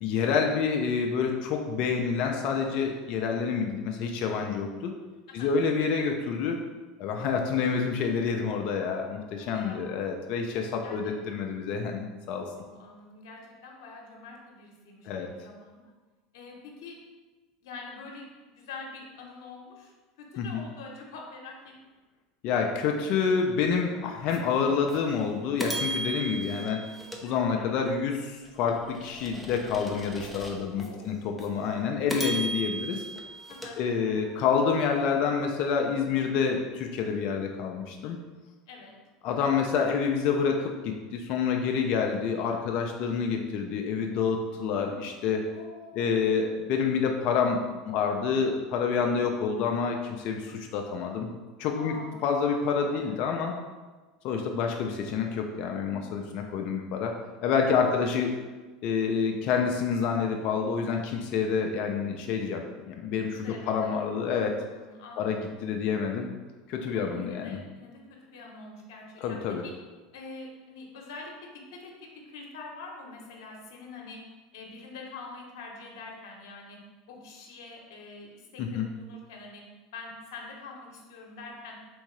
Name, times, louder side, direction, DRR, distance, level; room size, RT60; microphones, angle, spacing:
voice 1, 0.0-4.9 5.3-6.6 7.0-12.5 15.0-15.3 20.4-20.6 22.4-26.9 27.2-33.0 33.8-38.2 39.2-45.4 46.0-51.3 51.6-51.9 52.2-53.6 54.2-57.1 57.4-58.3 58.8-64.6 65.2-66.3 66.7-67.6 69.2-69.6 78.6-78.9, left 6 dB, 55° left, 2 dB, 0.5 m, -28 dB
voice 2, 9.4-9.8 10.8-11.1 12.5-15.9 16.3-17.0 17.6-21.7 30.7-31.2 33.5-33.8 38.7-39.0 45.5-46.1 49.0-49.3 51.8-52.3 52.8-53.3 57.8-58.3 63.4-63.9 64.7-65.4 66.9-69.7 70.1-71.3 71.7-74.2 74.5-76.8 77.1-79.6 79.9-81.8, left 3 dB, 80° left, 0 dB, 0.9 m, -45 dB
sound 1, 24.3-24.4 24.9-25.0 25.6-27.9 28.5-30.9 31.4-31.5 32.1-34.5, right 2 dB, ahead, 0.6 m, -37 dB
3.6 x 3.5 x 3.2 m, 1.3 s
supercardioid pair, 105°, 2 cm